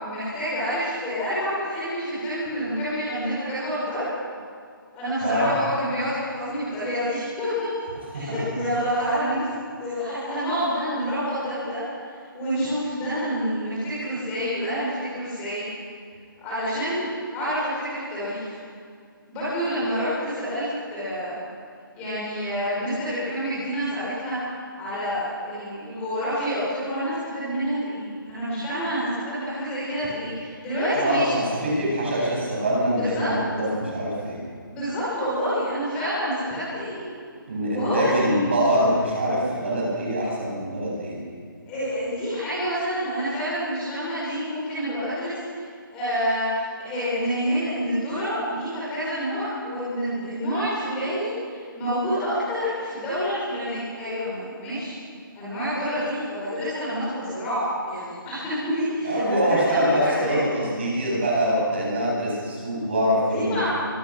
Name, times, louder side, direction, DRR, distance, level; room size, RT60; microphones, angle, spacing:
voice 1, 0.0-4.1 4.9-7.7 8.1-9.5 9.8-12.1 12.3-15.7 16.4-17.0 17.3-18.5 19.3-21.3 21.9-24.4 24.8-31.8 33.0-33.3 34.7-37.1 37.7-38.1 41.7-45.6 45.9-54.9 55.3-60.4 63.1-63.7, equal, 10° left, -10 dB, 5.0 m, -28 dB
voice 2, 31.0-34.4 37.5-41.2 59.0-63.7, equal, 30° right, -4 dB, 7.7 m, -24 dB
24.5 x 24.0 x 6.3 m, 2.2 s
hypercardioid pair, 180°, 12 cm